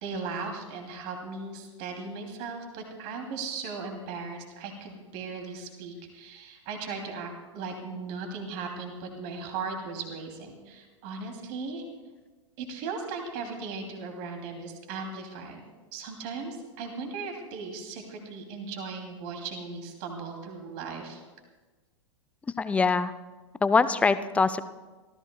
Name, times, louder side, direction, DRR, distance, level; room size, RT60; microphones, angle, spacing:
voice 1, 0.0-11.8 12.6-15.6 15.9-21.2, right 4 dB, 40° right, 3 dB, 2.7 m, -37 dB
voice 2, 22.6-23.1 23.6-24.6, left 4 dB, 10° left, 13 dB, 0.4 m, -23 dB
28.0 x 14.5 x 2.3 m, 1.3 s
figure-of-eight pair, 100°, 16 cm